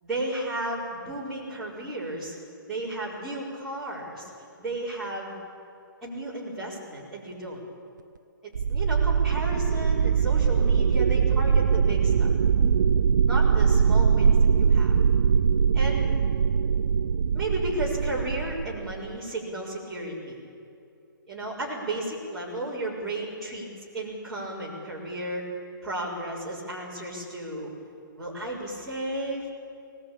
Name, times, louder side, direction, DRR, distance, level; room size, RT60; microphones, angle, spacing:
voice 1, 0.0-2.3 2.6-4.3 4.6-5.4 6.0-7.6 8.4-12.3 13.3-14.9 15.7-16.1 17.3-20.4 21.3-23.7 23.9-25.4 25.8-27.7 28.2-29.5, right 1 dB, ahead, -11 dB, 4.9 m, -33 dB
sound 1, 8.6-19.2, right 6 dB, 55° right, 0.6 m, -22 dB
21.0 x 19.0 x 8.7 m, 2.6 s
hypercardioid pair, 170°, 12 cm